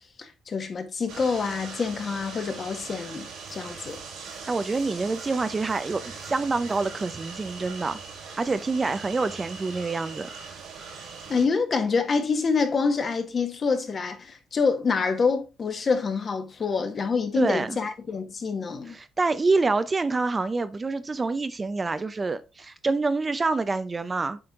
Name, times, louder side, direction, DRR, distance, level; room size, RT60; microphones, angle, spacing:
voice 1, 0.2-4.0 11.3-18.9, left 5 dB, 45° left, 1.4 m, -26 dB
sound 1, 1.1-11.4, right 5 dB, 85° right, 4.0 m, -40 dB
voice 2, 4.5-8.0 8.4-10.3 17.3-17.8 18.9-24.4, right 3 dB, 30° right, 0.6 m, -27 dB
7.7 x 4.3 x 3.6 m
cardioid pair, 90°, 0 cm